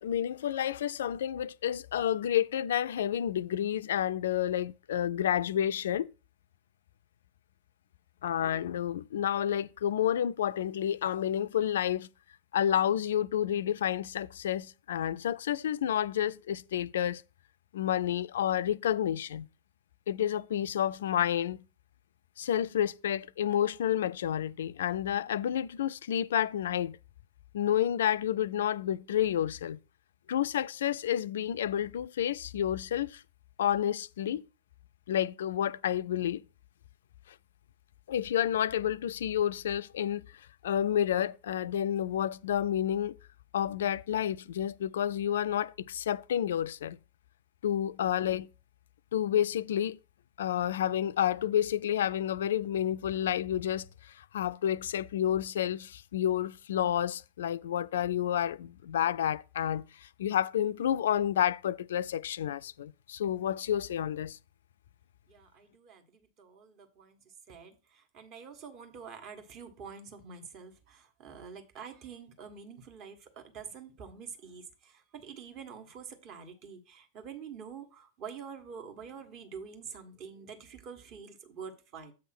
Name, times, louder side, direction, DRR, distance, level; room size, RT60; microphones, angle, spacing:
voice 1, 0.0-6.1 8.2-12.1 12.5-17.2 17.7-19.5 20.1-21.6 22.4-27.0 27.5-29.8 30.3-33.2 33.6-34.4 35.1-36.4 38.1-43.2 43.5-47.0 47.6-48.5 49.1-50.0 50.4-64.4, left 10 dB, 60° left, 0.4 m, -30 dB
voice 2, 65.3-67.2 67.5-82.1, right 6 dB, 40° right, 1.6 m, -47 dB
7.8 x 3.5 x 6.1 m
figure-of-eight pair, 90°, 0 cm